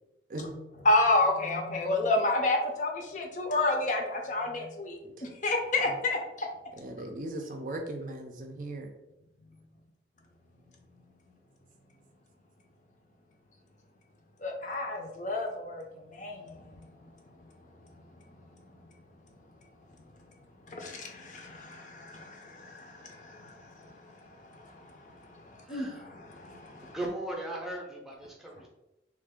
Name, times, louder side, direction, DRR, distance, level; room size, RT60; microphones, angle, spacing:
voice 1, 0.8-6.5 14.4-17.1 17.4-17.5 18.0-18.4 20.6-26.9, left 2 dB, 45° left, 2 dB, 0.5 m, -31 dB
voice 2, 6.8-8.9, right 1 dB, 45° right, 3 dB, 0.5 m, -38 dB
voice 3, 25.6-26.1 26.8-28.7, right 1 dB, ahead, -1 dB, 0.6 m, -38 dB
3.3 x 2.4 x 3.5 m, 0.92 s
head